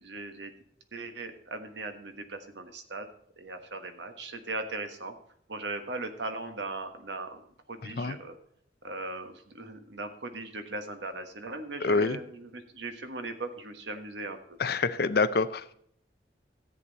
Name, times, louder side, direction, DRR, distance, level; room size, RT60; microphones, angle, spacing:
voice 1, 0.0-0.5 0.9-3.1 3.4-5.1 5.5-7.4 7.7-8.3 8.8-14.6, right 2 dB, 75° right, 7 dB, 1.4 m, -38 dB
voice 2, 11.8-12.2 14.6-15.7, left 4 dB, 60° left, 14 dB, 0.6 m, -26 dB
13.5 x 8.5 x 4.1 m, 0.67 s
head